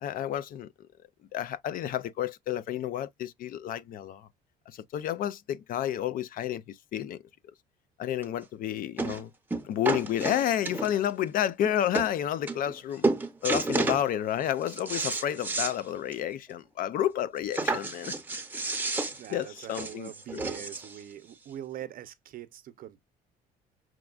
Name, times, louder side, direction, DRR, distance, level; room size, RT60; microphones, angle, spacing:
voice 1, 0.0-0.7 1.3-4.3 4.7-7.2 8.0-9.3 9.6-13.1 13.4-18.1 19.3-20.4, left 11 dB, 55° left, 0.4 m, -30 dB
sound 1, 8.2-8.3 9.0-9.2 9.5-11.1 11.6-11.7 11.9-12.1 12.5-12.8 13.0-14.0 14.4-15.8 16.1-16.2 16.5-16.6 17.5-21.0 21.8-21.9, right 3 dB, 10° right, 0.7 m, -31 dB
voice 2, 18.9-23.0, right 11 dB, 55° right, 0.7 m, -43 dB
6.0 x 2.3 x 2.3 m
cardioid pair, 110°, 17 cm